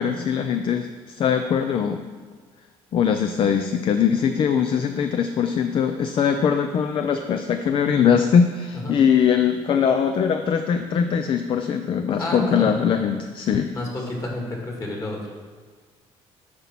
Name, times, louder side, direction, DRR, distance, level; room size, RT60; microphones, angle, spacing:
voice 1, 0.0-2.0 2.9-13.7, left 7 dB, 50° left, 7 dB, 0.5 m, -21 dB
voice 2, 12.2-13.0 13.7-15.2, left 1 dB, 30° left, -1 dB, 2.1 m, -29 dB
9.5 x 4.2 x 6.0 m, 1.5 s
cardioid pair, 110°, 11 cm